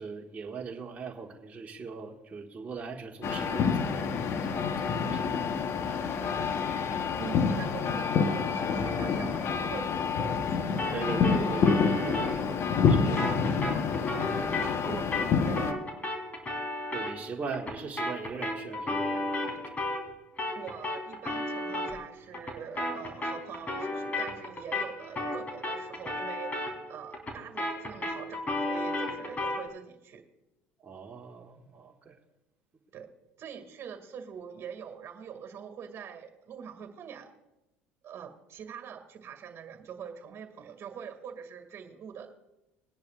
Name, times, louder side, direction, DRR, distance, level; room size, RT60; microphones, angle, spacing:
voice 1, 0.0-4.1 4.4-5.5 6.8-7.0 10.9-13.2 14.4-14.5 14.8-15.0 16.9-19.7 30.8-32.2, right 4 dB, 25° right, -1 dB, 1.6 m, -40 dB
sound 1, 3.2-15.7, left 5 dB, 50° left, 1.0 m, -28 dB
voice 2, 7.2-10.7 14.8-15.7 20.5-30.2 32.9-33.1 33.4-37.3 38.0-42.3, right 7 dB, 50° right, 6 dB, 2.1 m, -44 dB
sound 2, 10.8-20.1 20.4-29.7, left 2 dB, 25° left, 3.6 m, -34 dB
21.0 x 10.5 x 2.4 m, 0.98 s
supercardioid pair, 80°, 6 cm